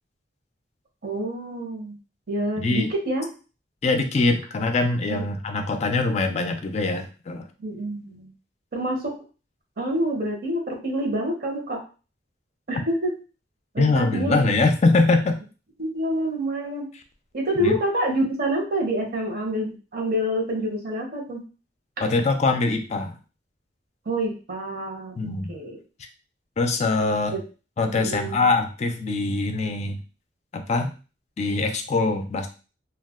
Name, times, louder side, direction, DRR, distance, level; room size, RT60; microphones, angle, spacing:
voice 1, 1.0-1.9 2.3-3.3 5.1-5.2 7.6-8.3 8.7-9.2 9.8-11.8 12.7-13.1 13.7-14.4 15.8-16.9 17.3-21.4 24.1-25.2 25.5-25.8 27.3-27.4 27.9-28.4, right 1 dB, 55° right, 0 dB, 0.8 m, -27 dB
voice 2, 2.6-2.9 3.8-7.4 13.8-15.4 17.6-17.8 22.0-23.2 25.2-25.5 26.6-27.4 27.8-30.0 30.5-30.9 31.4-32.5, left 3 dB, 40° left, 6 dB, 0.4 m, -23 dB
2.3 x 2.2 x 3.5 m, 0.34 s
head